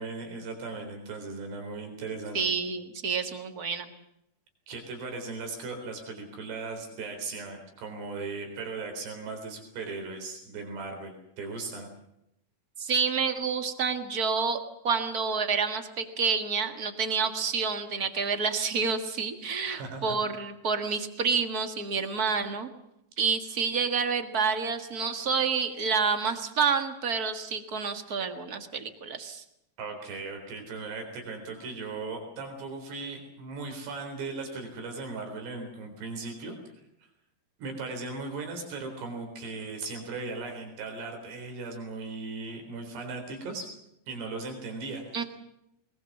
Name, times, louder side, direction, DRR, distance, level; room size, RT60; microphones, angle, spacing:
voice 1, 0.0-2.4 4.7-11.9 19.6-20.2 29.8-36.6 37.6-43.7 44.1-45.3, right 3 dB, 90° right, 4 dB, 6.1 m, -37 dB
voice 2, 2.3-3.9 12.8-22.7 23.2-29.4 45.1-45.2, right 5 dB, 65° right, 7 dB, 0.9 m, -28 dB
22.5 x 21.0 x 7.3 m, 0.80 s
omnidirectional pair, 4.7 m